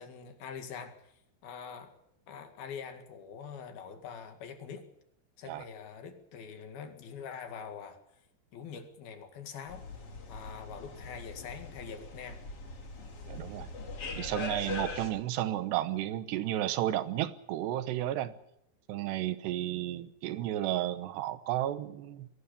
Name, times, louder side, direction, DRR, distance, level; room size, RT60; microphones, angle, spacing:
voice 1, 0.0-1.9 2.3-4.9 5.4-8.0 8.5-9.9 10.3-12.4 19.7-20.0, left 6 dB, 65° left, 7 dB, 3.9 m, -44 dB
sound 1, 9.7-15.1, left 3 dB, 35° left, 3.5 m, -41 dB
voice 2, 13.3-13.7 14.2-18.3 18.9-22.3, right 13 dB, 85° right, 13 dB, 3.2 m, -32 dB
21.0 x 17.5 x 8.6 m, 0.75 s
omnidirectional pair, 4.7 m